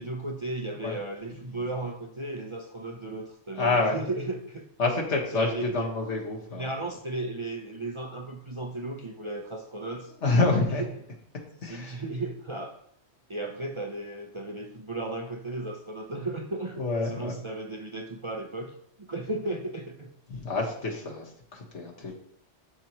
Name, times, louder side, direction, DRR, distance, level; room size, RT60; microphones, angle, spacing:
voice 1, 0.0-4.6 5.3-5.9 6.5-10.1 10.8-10.9 11.6-12.8 13.3-20.1, right 2 dB, 35° right, 2 dB, 0.6 m, -35 dB
voice 2, 3.6-4.0 4.8-6.7 10.2-10.8 11.6-12.0 16.8-17.3 20.3-22.1, left 3 dB, 75° left, -1 dB, 1.8 m, -27 dB
12.0 x 4.5 x 3.0 m, 0.67 s
omnidirectional pair, 1.2 m